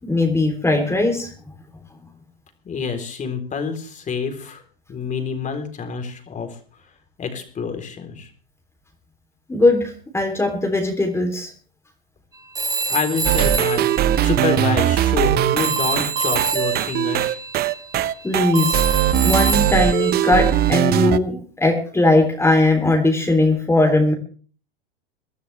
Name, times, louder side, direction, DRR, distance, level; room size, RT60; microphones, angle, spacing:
voice 1, 0.0-1.3 9.5-11.5 18.2-18.8 19.2-24.1, left 2 dB, 10° left, 2 dB, 3.5 m, -19 dB
voice 2, 2.6-4.6 4.9-6.6 7.2-8.3 12.9-17.4, left 5 dB, 25° left, 6 dB, 3.9 m, -27 dB
Telephone, 12.5-15.3 15.6-20.8, right 4 dB, 10° right, 1.9 m, -28 dB
sound 1, 13.2-21.2, right 12 dB, 30° right, 0.8 m, -20 dB
23.5 x 12.5 x 3.5 m, 0.41 s
hypercardioid pair, 105°, 30 cm